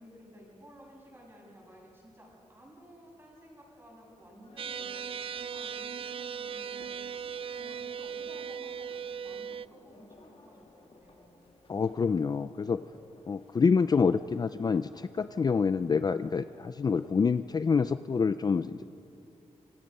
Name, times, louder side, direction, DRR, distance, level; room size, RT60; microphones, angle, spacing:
voice 1, 0.0-7.2 7.5-11.4, equal, 20° right, -2 dB, 7.5 m, -54 dB
sound 1, 4.4-17.4, left 3 dB, 50° left, 2.4 m, -60 dB
sound 2, 4.6-9.7, right 7 dB, 50° right, 0.4 m, -38 dB
voice 2, 11.7-12.8 13.3-18.8, left 5 dB, 35° left, 12 dB, 0.4 m, -27 dB
26.5 x 23.0 x 5.5 m, 3.0 s
wide cardioid pair, 110°, 12 cm